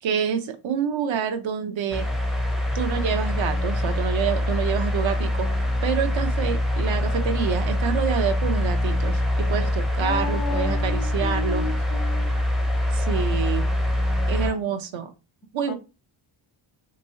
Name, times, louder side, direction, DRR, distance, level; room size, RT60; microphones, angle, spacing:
voice 1, 0.0-2.1 2.7-5.5 5.8-11.7 12.9-13.7 14.3-15.1 15.5-15.7, right 7 dB, 70° right, 0.7 m, -27 dB
sound 1, 1.9-14.5, left 1 dB, ahead, 0.4 m, -24 dB
voice 2, 10.0-12.3 15.7-15.8, left 4 dB, 90° left, 0.7 m, -32 dB
2.9 x 2.7 x 2.8 m
wide cardioid pair, 145°, 48 cm